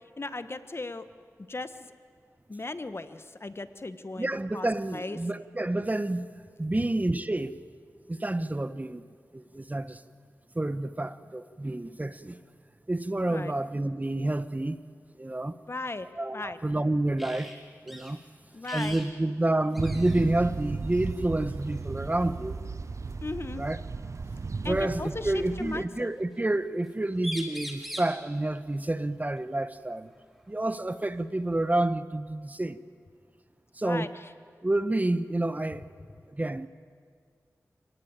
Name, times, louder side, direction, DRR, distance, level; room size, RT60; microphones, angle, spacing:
voice 1, 0.2-1.0 1.5-1.9 2.5-5.2 13.3-13.5 15.7-16.1 16.3-16.6 18.5-19.0 23.2-23.6 24.6-26.1 33.8-34.1, left 2 dB, 45° left, 1.4 m, -37 dB
voice 2, 4.1-6.3 6.6-7.6 8.1-9.0 9.3-10.0 10.5-12.4 12.9-14.8 15.2-15.6 16.2-17.5 17.9-18.2 18.7-22.6 23.6-23.8 24.6-30.1 30.5-32.8 33.8-34.1 34.6-35.8 36.3-36.7, right 2 dB, 25° right, 1.0 m, -29 dB
sound 1, 17.2-17.6 17.9-18.1 18.6-19.1 19.4-19.5 19.7-20.3 21.5-21.7 23.4-23.5 24.6-25.5 26.9-27.0 27.2-28.2 30.1-30.2 30.7-31.7, equal, ahead, 4.2 m, -41 dB
sound 2, 19.8-25.9, right 4 dB, 60° right, 0.9 m, -36 dB
29.0 x 19.0 x 9.0 m
cardioid pair, 50°, 6 cm